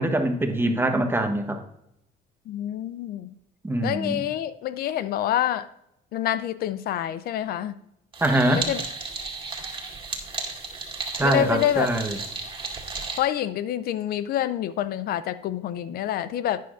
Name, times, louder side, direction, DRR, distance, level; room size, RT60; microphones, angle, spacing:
voice 1, 0.0-1.6 3.6-4.2 8.2-8.7 11.1-12.2, right 1 dB, 15° right, 4 dB, 1.1 m, -23 dB
voice 2, 2.5-3.3 3.8-5.7 6.1-7.8 8.5-8.8 11.2-11.9 13.2-16.6, left 11 dB, 65° left, 14 dB, 0.4 m, -27 dB
sound 1, 8.1-13.2, right 4 dB, 30° right, 2.0 m, -34 dB
11.5 x 9.3 x 2.5 m, 0.81 s
cardioid pair, 110°, 17 cm